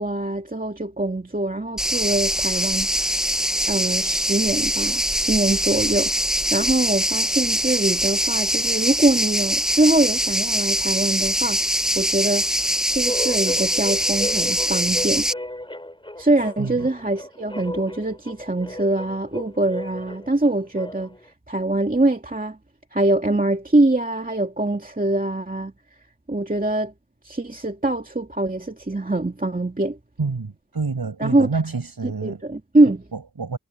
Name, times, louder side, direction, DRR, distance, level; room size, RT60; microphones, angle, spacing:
voice 1, 0.0-3.2 3.7-6.1 6.5-12.5 12.9-15.3 16.2-21.2 21.5-22.6 22.9-25.7 26.3-26.9 27.2-30.0 31.2-31.6 32.0-33.0, right 2 dB, 25° right, 2.5 m, -23 dB
sound 1, 1.8-15.3, equal, ahead, 0.9 m, -23 dB
sound 2, 13.0-21.3, left 1 dB, 15° left, 2.9 m, -35 dB
voice 2, 16.6-16.9 30.2-32.4 33.1-33.6, right 4 dB, 75° right, 7.4 m, -28 dB
wide cardioid pair, 75°, 36 cm